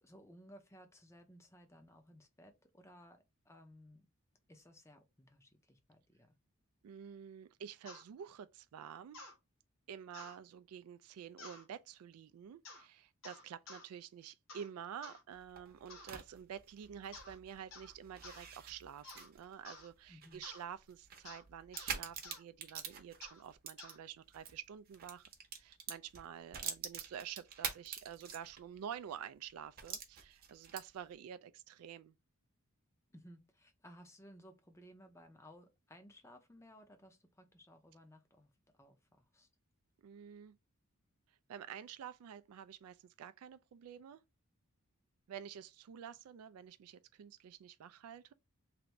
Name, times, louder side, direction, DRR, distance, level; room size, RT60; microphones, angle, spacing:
voice 1, 0.0-4.0 4.5-6.4 20.1-20.4 33.1-39.5, equal, 15° left, 0.6 m, -59 dB
voice 2, 6.8-9.2 9.9-25.3 25.6-32.2 40.0-40.5 41.3-44.2 45.3-48.3, right 8 dB, 85° right, 0.3 m, -49 dB
sound 1, 7.9-8.0 9.1-9.4 10.1-10.4 11.4-11.6 12.6-12.9 13.2-13.9 14.5-14.7 15.0-15.2 15.9-16.2 17.1-17.4 17.7-17.9 18.2-18.4 19.0-19.3 19.7-19.9 20.4-20.6 21.3-21.4 21.7-21.9 22.2-22.4 23.2-23.4 23.8-24.0, left 3 dB, 65° left, 1.2 m, -52 dB
sound 2, 15.3-24.5 24.9-28.8 29.1-29.2 29.8-31.1, right 7 dB, 40° right, 0.7 m, -46 dB
3.3 x 2.5 x 2.9 m
head